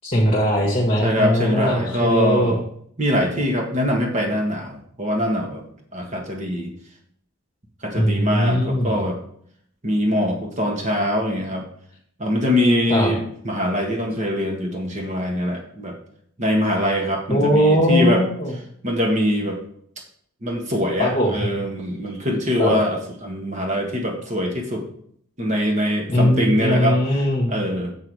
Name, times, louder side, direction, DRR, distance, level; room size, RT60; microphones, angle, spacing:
voice 1, 0.0-2.6 7.9-9.0 12.9-13.1 17.3-18.5 21.0-21.5 22.6-22.7 26.1-27.5, equal, 30° left, -3 dB, 1.4 m, -20 dB
voice 2, 1.0-2.6 3.0-5.6 5.9-6.7 7.8-9.2 9.8-11.7 12.2-16.0 16.4-18.2 18.8-19.6 20.4-24.9 25.4-27.0 27.5-27.9, equal, 35° right, 1 dB, 1.4 m, -23 dB
7.5 x 5.9 x 4.7 m, 0.66 s
head